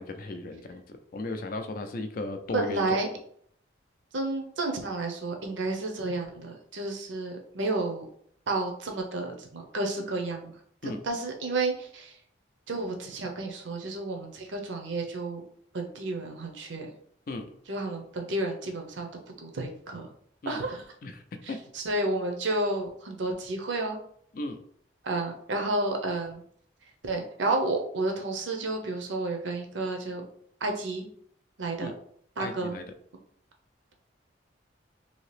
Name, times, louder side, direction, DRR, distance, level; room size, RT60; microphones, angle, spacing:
voice 1, 0.0-3.0 10.8-11.0 17.3-17.5 20.4-20.6 21.0-21.6 24.3-24.6 31.8-31.9 32.4-32.8, left 2 dB, 45° left, 7 dB, 0.4 m, -36 dB
voice 2, 2.5-3.1 4.1-8.0 8.5-12.2 12.7-15.4 15.7-16.9 17.7-19.1 19.4-20.1 20.5-20.9 21.4-24.0 25.0-26.4 27.0-30.3 30.6-31.1 31.6-31.9 32.4-32.8, right 2 dB, 80° right, 3 dB, 0.7 m, -31 dB
2.8 x 2.7 x 3.2 m, 0.63 s
head